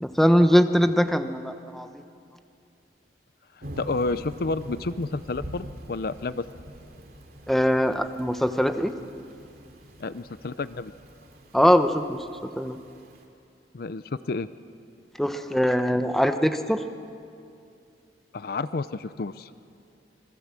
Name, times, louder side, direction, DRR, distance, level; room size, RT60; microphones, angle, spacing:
voice 1, 0.0-1.9 7.5-8.9 11.5-12.2 12.6-12.8 15.2-16.8, equal, ahead, 8 dB, 0.9 m, -21 dB
Thunder / Rain, 3.6-13.2, equal, 60° right, 2.8 m, -44 dB
voice 2, 3.8-6.5 10.0-10.9 13.7-14.5 18.3-19.5, left 3 dB, 60° left, 14 dB, 0.6 m, -30 dB
26.5 x 21.0 x 7.5 m, 2.5 s
head